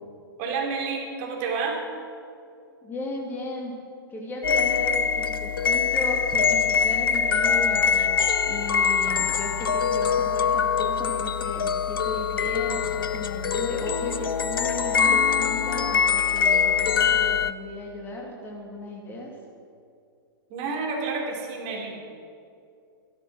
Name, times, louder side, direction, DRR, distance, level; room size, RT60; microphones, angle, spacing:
voice 1, 0.4-1.8 20.5-22.0, right 4 dB, 35° right, 0 dB, 3.2 m, -29 dB
voice 2, 2.8-3.8 4.1-8.2 8.4-19.3, left 1 dB, 15° left, -1 dB, 2.5 m, -35 dB
sound 1, 4.4-17.5, left 6 dB, 65° left, 0.6 m, -23 dB
14.5 x 13.0 x 6.2 m, 2.4 s
figure-of-eight pair, 105°, 12 cm